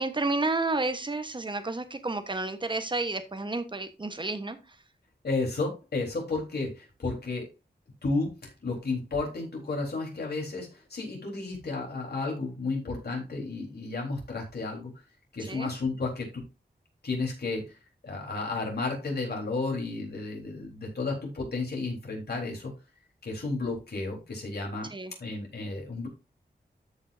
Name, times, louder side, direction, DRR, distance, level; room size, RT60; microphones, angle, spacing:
voice 1, 0.0-4.6 15.5-15.7 24.9-25.1, right 2 dB, 30° right, 9 dB, 1.2 m, -31 dB
voice 2, 5.2-7.5 8.0-14.9 15.3-16.4 17.0-17.8 18.0-22.7 23.2-24.9 25.2-26.1, left 3 dB, 70° left, -1 dB, 3.9 m, -32 dB
13.5 x 5.5 x 2.7 m, 0.26 s
wide cardioid pair, 95°, 17 cm